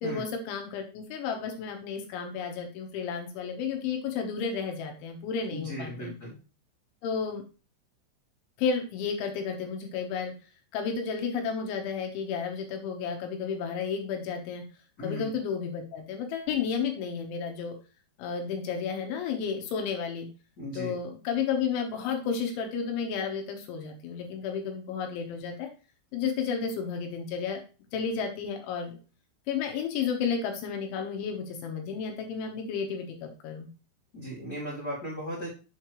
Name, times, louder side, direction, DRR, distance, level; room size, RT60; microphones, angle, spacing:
voice 1, 0.0-6.1 7.0-7.4 8.6-10.3 10.7-14.6 15.0-17.7 18.2-20.3 20.7-25.7 26.1-27.6 27.9-29.0 29.5-33.7, left 6 dB, 75° left, 3 dB, 3.3 m, -32 dB
voice 2, 5.5-6.3 15.0-15.3 20.6-20.9 34.1-35.5, equal, 35° left, -7 dB, 1.6 m, -36 dB
7.4 x 6.5 x 3.0 m, 0.34 s
omnidirectional pair, 5.8 m